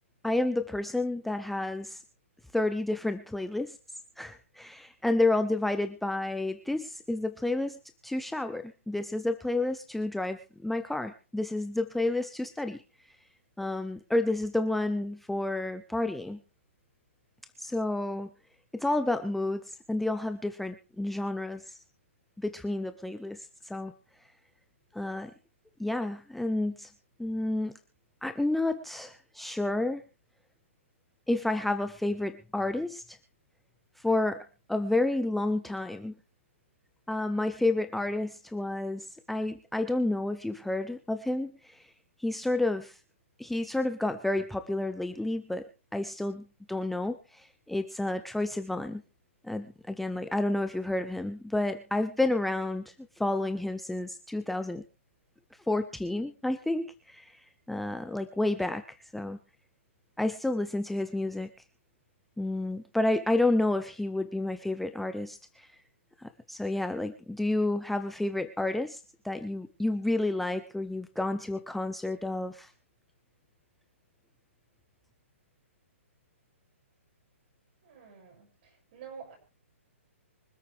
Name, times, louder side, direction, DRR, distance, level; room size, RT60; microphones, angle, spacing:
voice 1, 0.2-2.0 2.5-3.8 4.2-12.8 13.6-16.4 17.6-18.3 18.7-21.8 22.4-23.9 24.9-25.3 25.8-26.9 27.2-27.7 28.2-30.0 31.3-33.2 34.0-34.4 34.7-36.1 37.1-41.9 42.2-43.0 43.4-49.0 49.4-54.8 55.7-59.4 60.2-61.5 62.4-65.7 66.2-72.7, left 2 dB, ahead, 9 dB, 0.5 m, -30 dB
voice 2, 77.8-79.3, right 7 dB, 45° right, 2 dB, 6.4 m, -48 dB
25.0 x 8.5 x 3.4 m, 0.33 s
hypercardioid pair, 155°, 7 cm